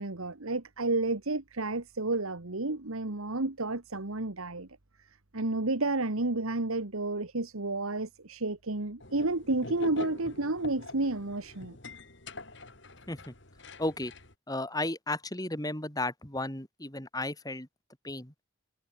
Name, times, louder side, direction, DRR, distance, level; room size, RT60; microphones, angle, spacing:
voice 1, 0.0-4.7 5.3-11.8, right 2 dB, 75° right, 1.7 m, -31 dB
sound 1, 9.0-14.3, left 2 dB, 55° left, 4.8 m, -45 dB
voice 2, 13.8-14.1 14.5-17.7 18.0-18.3, left 2 dB, 15° left, 3.2 m, -34 dB
head